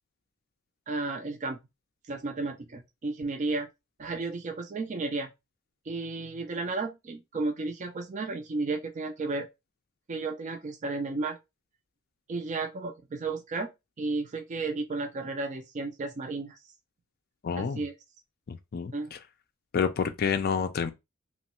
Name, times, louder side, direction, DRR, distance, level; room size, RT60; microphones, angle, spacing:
voice 1, 0.9-1.6 2.1-3.7 4.0-5.3 5.9-9.5 10.1-11.4 12.3-13.7 14.0-16.6 17.6-17.9 18.9-19.1, right 3 dB, 35° right, 0.4 m, -33 dB
voice 2, 17.4-17.8 18.5-19.2 19.7-20.9, left 6 dB, 45° left, 0.4 m, -29 dB
3.0 x 2.2 x 2.9 m
head